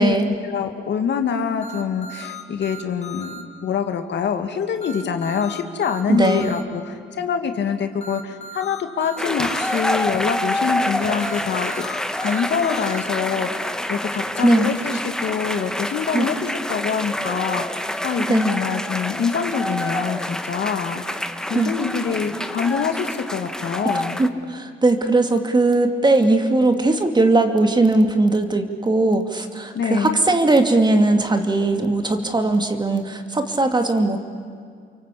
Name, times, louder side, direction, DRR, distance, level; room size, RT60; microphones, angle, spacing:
voice 1, 0.4-11.8 12.2-21.0 21.5-24.2 29.7-30.2, left 6 dB, 60° left, 6 dB, 2.2 m, -25 dB
sound 1, 1.6-3.4 4.8-6.6 8.0-9.8 11.2-13.0, left 1 dB, 30° left, 2.8 m, -37 dB
voice 2, 6.1-6.5 14.4-14.7 16.1-16.3 18.2-18.5 21.5-21.7 24.2-34.2, right 2 dB, 20° right, 6 dB, 2.5 m, -19 dB
sound 2, 9.2-24.3, left 1 dB, 5° left, 1.2 m, -27 dB
29.0 x 23.5 x 8.5 m, 2.2 s
cardioid pair, 90°, 20 cm